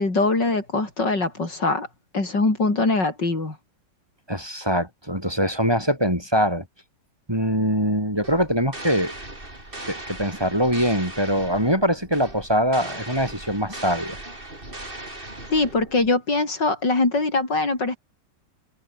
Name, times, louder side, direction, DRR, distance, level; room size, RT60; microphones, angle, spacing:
voice 1, 0.0-1.9 2.1-3.6 15.5-18.0, left 3 dB, 85° left, 6.0 m, -22 dB
voice 2, 4.3-6.6 7.3-9.1 9.9-14.2, equal, 15° right, 8.0 m, -23 dB
sound 1, 8.2-16.1, right 1 dB, 30° right, 5.5 m, -38 dB
omnidirectional pair, 1.9 m